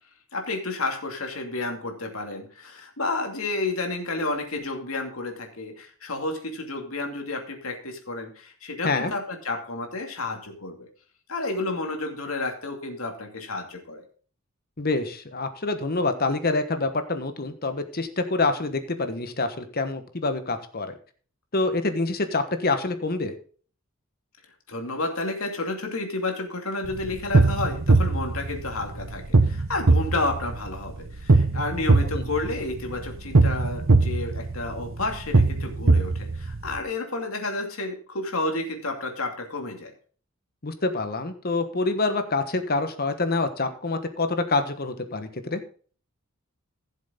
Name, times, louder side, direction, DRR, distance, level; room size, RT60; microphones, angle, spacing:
voice 1, 0.3-10.9 11.3-14.0 24.7-39.9, left 2 dB, 85° left, 3 dB, 2.5 m, -31 dB
voice 2, 14.8-21.0 21.5-23.3 32.1-32.3 40.6-45.6, left 3 dB, 45° left, 9 dB, 1.3 m, -26 dB
sound 1, 26.8-36.8, right 3 dB, 65° right, 1.0 m, -22 dB
15.5 x 7.4 x 3.8 m, 0.41 s
head